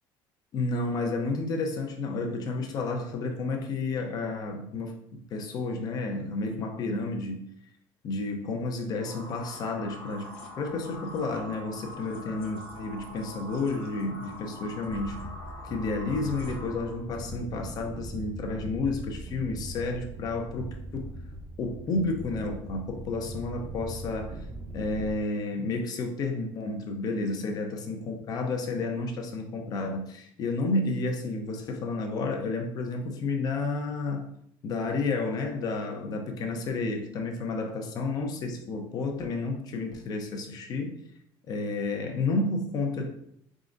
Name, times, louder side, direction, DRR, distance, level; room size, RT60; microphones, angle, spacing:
voice 1, 0.5-7.4 8.0-15.2 15.6-21.1 21.6-24.4 24.7-34.3 34.6-41.0 41.5-43.1, left 3 dB, 45° left, 3 dB, 0.7 m, -31 dB
sound 1, 9.0-17.0, left 1 dB, 75° left, 0.9 m, -44 dB
sound 2, 14.9-25.1, right 2 dB, 25° right, 0.5 m, -40 dB
4.0 x 3.7 x 2.5 m, 0.72 s
cardioid pair, 145°, 9 cm